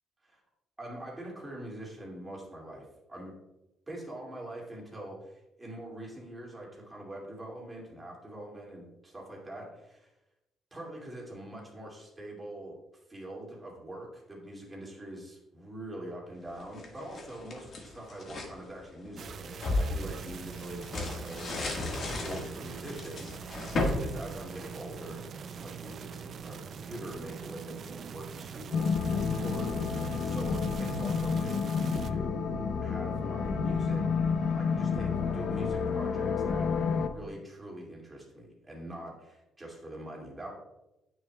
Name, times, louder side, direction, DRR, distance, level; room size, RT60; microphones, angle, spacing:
voice 1, 0.8-3.3 3.9-10.1 10.7-12.8 13.1-34.1 34.5-36.7 37.1-40.5, right 1 dB, 15° right, -3 dB, 2.4 m, -44 dB
sound 1, 16.6-18.5 19.1-25.1, left 2 dB, 45° left, 1.6 m, -35 dB
sound 2, 19.2-32.1, right 7 dB, 50° right, 0.4 m, -43 dB
sound 3, 28.7-37.1, left 5 dB, 65° left, 0.6 m, -30 dB
9.6 x 6.2 x 2.3 m, 0.93 s
cardioid pair, 125°, 0 cm